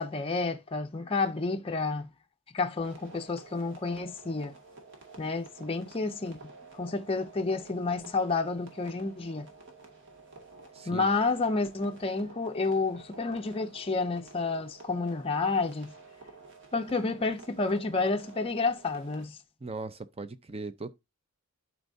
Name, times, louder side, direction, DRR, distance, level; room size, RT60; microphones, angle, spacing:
voice 1, 0.0-2.1 2.5-4.5 5.2-6.4 6.7-9.5 10.9-15.9 16.7-19.4, left 3 dB, 25° left, 0.6 m, -30 dB
sound 1, 2.8-19.2, right 3 dB, 55° right, 2.0 m, -51 dB
voice 2, 10.7-11.1 19.6-20.9, right 3 dB, 25° right, 0.7 m, -39 dB
11.5 x 4.6 x 2.7 m
head